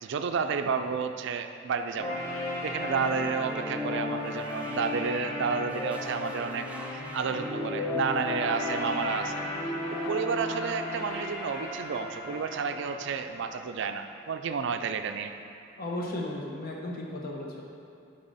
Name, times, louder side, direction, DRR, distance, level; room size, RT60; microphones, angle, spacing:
voice 1, 0.0-2.2 2.6-6.7 6.9-9.4 9.9-15.4, right 5 dB, 65° right, 7 dB, 0.4 m, -31 dB
sound 1, 2.0-14.0, left 2 dB, 15° left, 1.1 m, -35 dB
sound 2, 2.5-5.3 5.7-8.2, right 2 dB, 5° right, 0.5 m, -49 dB
sound 3, 7.8-13.7, left 3 dB, 90° left, 0.6 m, -48 dB
voice 2, 15.8-17.6, left 1 dB, 50° left, -1 dB, 1.0 m, -35 dB
6.7 x 5.4 x 4.1 m, 2.6 s
head